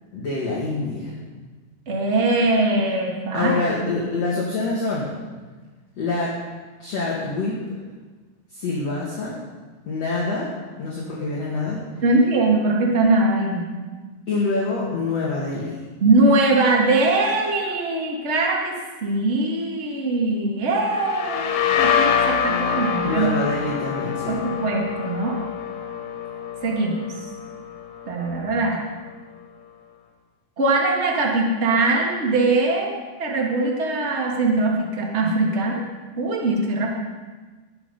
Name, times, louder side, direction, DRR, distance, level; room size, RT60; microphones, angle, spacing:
voice 1, 0.1-1.2 3.3-5.5 6.0-6.4 6.8-7.6 8.5-9.4 9.9-10.5 10.8-11.8 14.3-15.8 23.0-24.4, left 3 dB, 45° left, -5 dB, 2.7 m, -26 dB
voice 2, 1.9-4.1 12.0-13.7 16.0-18.8 19.0-23.3 24.3-25.4 26.6-27.3 28.1-28.8 30.6-35.8 36.2-36.9, right 2 dB, 85° right, -1 dB, 0.6 m, -21 dB
sound 1, 20.9-28.4, left 7 dB, 85° left, 3.6 m, -25 dB
20.0 x 7.4 x 5.5 m, 1.3 s
omnidirectional pair, 4.7 m